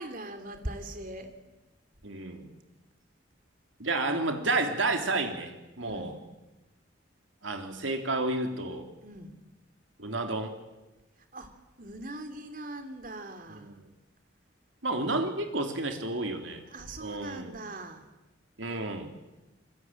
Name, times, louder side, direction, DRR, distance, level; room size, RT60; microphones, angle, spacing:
voice 1, 0.0-1.3 5.8-6.2 9.0-9.4 11.3-11.5 11.8-13.8 16.7-18.1, right 1 dB, 45° right, 7 dB, 3.2 m, -41 dB
voice 2, 2.0-2.5 3.8-6.1 7.4-8.9 10.0-10.5 13.5-13.9 14.8-16.6 17.0-17.5 18.6-19.1, right 2 dB, 75° right, 5 dB, 3.6 m, -31 dB
27.5 x 21.5 x 9.1 m, 1.1 s
head